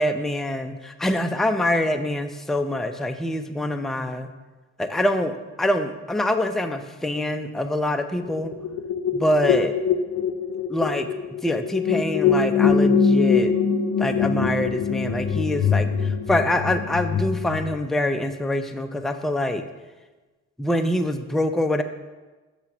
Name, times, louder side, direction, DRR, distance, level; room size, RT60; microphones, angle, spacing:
voice 1, 0.0-4.3 4.8-8.5 9.1-9.7 10.7-11.1 11.4-13.5 14.0-19.6 20.6-21.8, left 1 dB, ahead, 7 dB, 0.4 m, -25 dB
sound 1, 8.2-17.7, left 5 dB, 50° left, 0.6 m, -23 dB
7.1 x 2.9 x 5.8 m, 1.2 s
cardioid pair, 90°, 30 cm